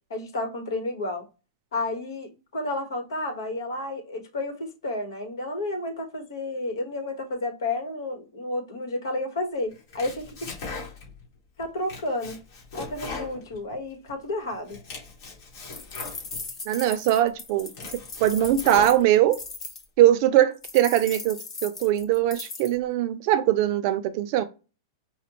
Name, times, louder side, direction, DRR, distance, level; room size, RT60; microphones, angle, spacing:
voice 1, 0.1-1.3 1.7-10.5 11.6-12.4 12.7-14.8, left 2 dB, 80° left, 1.2 m, -31 dB
Domestic sounds home sounds, 9.7-11.2 11.6-14.1 14.5-16.5 17.0-17.1 17.5-19.5, left 3 dB, 50° left, 2.0 m, -39 dB
sound 1, 15.7-19.8 20.6-22.7, left 4 dB, 15° left, 0.7 m, -38 dB
voice 2, 16.7-17.7 18.2-19.4 20.0-24.4, right 12 dB, 40° right, 0.4 m, -21 dB
5.1 x 2.1 x 2.9 m
supercardioid pair, 155°, 2 cm